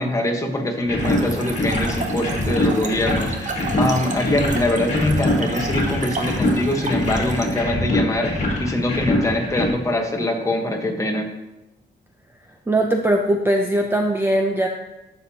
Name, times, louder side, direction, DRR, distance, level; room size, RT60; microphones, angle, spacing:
voice 1, 0.0-11.3, left 1 dB, 15° left, 2 dB, 1.1 m, -23 dB
sound 1, 0.8-9.7, left 1 dB, 35° left, 2.0 m, -24 dB
Trickle dribble / Fill (with liquid), 1.0-7.6, right 4 dB, 45° right, 0.8 m, -31 dB
voice 2, 12.7-14.7, right 1 dB, 10° right, 3 dB, 0.5 m, -20 dB
11.5 x 7.1 x 2.8 m, 0.98 s
wide cardioid pair, 180°, 18 cm